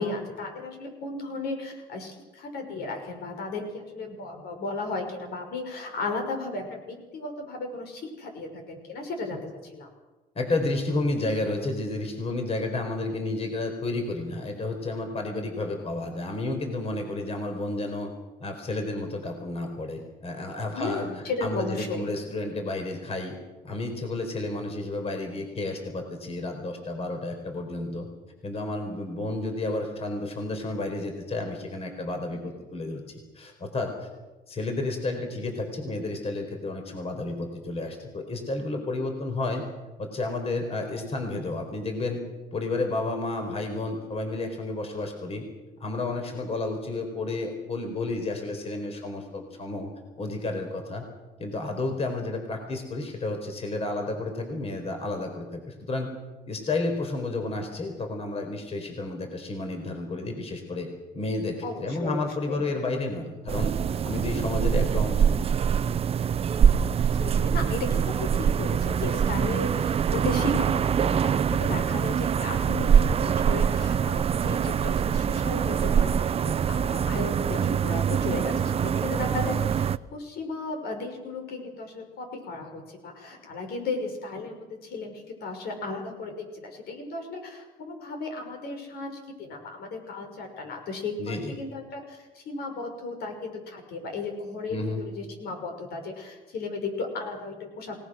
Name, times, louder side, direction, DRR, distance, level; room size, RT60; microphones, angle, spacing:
voice 1, 0.0-9.4 9.7-9.9 20.7-22.1 32.3-32.4 61.6-62.6 64.1-64.4 67.2-98.0, left 3 dB, 70° left, 4 dB, 6.1 m, -35 dB
voice 2, 10.3-18.1 18.4-21.1 21.4-23.4 23.6-28.1 28.4-34.1 34.5-39.6 40.0-42.2 42.5-45.4 45.8-49.9 50.1-51.0 51.4-56.1 56.5-60.9 61.1-63.7 64.0-65.4 91.2-91.6 94.7-95.0, left 2 dB, 35° left, 4 dB, 4.4 m, -31 dB
sound 1, 63.5-80.0, right 8 dB, 35° right, 0.6 m, -24 dB
28.5 x 19.0 x 6.4 m, 1.2 s
cardioid pair, 110°, 17 cm